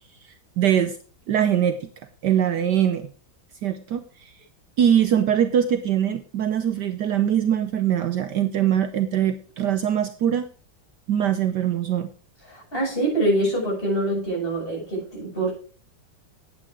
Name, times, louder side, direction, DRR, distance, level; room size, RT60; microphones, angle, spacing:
voice 1, 0.6-1.0 1.3-1.9 2.2-3.1 3.6-4.3 4.8-10.5 11.1-12.1, right 9 dB, 65° right, 9 dB, 1.3 m, -22 dB
voice 2, 12.5-15.5, right 1 dB, 25° left, -4 dB, 7.7 m, -25 dB
10.5 x 9.0 x 4.8 m, 0.40 s
omnidirectional pair, 2.1 m